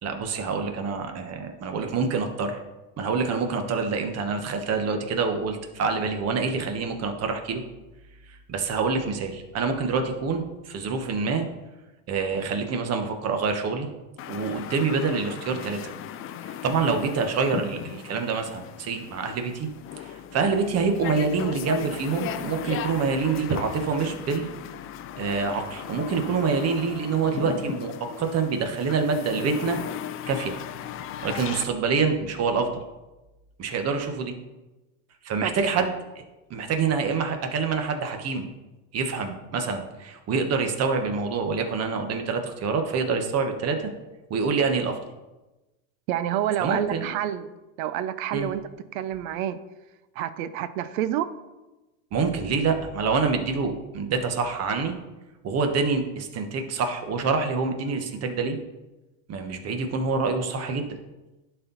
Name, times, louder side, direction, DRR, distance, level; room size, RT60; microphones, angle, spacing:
voice 1, 0.0-2.6 3.0-7.6 8.3-11.5 12.1-13.9 14.3-15.9 16.4-19.7 20.0-24.5 25.2-29.8 30.3-30.5 31.2-32.8 33.6-34.3 35.2-35.9 36.5-38.5 38.9-43.8 44.3-45.0 46.6-47.1 48.3-48.5 52.1-54.9 55.4-58.6 59.3-60.9, right 4 dB, 35° right, 5 dB, 1.2 m, -26 dB
sound 1, 14.2-31.6, left 10 dB, 30° left, 0.4 m, -37 dB
voice 2, 46.1-47.5 47.8-48.6 48.9-49.6 50.2-51.3, right 11 dB, 70° right, 14 dB, 0.7 m, -28 dB
11.0 x 4.5 x 4.0 m, 1.1 s
supercardioid pair, 110°, 43 cm